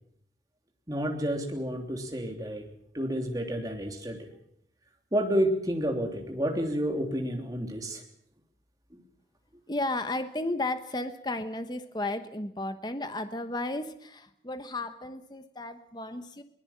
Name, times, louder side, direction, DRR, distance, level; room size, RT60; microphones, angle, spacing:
voice 1, 0.9-2.6 2.9-4.3 5.1-8.0 8.9-9.0, equal, 20° right, 2 dB, 3.2 m, -30 dB
voice 2, 9.7-16.4, left 2 dB, 25° left, 9 dB, 1.1 m, -34 dB
22.5 x 20.0 x 7.4 m, 0.72 s
head